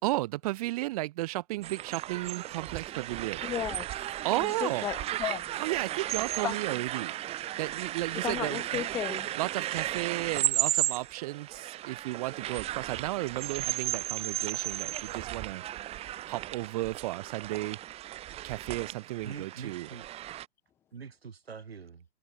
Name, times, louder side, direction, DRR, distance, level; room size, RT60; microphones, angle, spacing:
voice 1, 0.0-3.4 4.2-4.9 5.6-7.1 7.6-8.8 9.4-15.6 16.3-17.8 18.4-19.9, right 18 dB, 35° right, 3.1 m, -34 dB
sound 1, 1.6-20.5, right 13 dB, 20° right, 3.0 m, -35 dB
voice 2, 3.4-3.9 4.4-5.5 6.4-6.6 8.1-9.3, left 11 dB, 5° left, 0.6 m, -34 dB
voice 3, 19.2-20.1 20.9-22.1, right 6 dB, 65° right, 5.2 m, -44 dB
figure-of-eight pair, 125°, 33 cm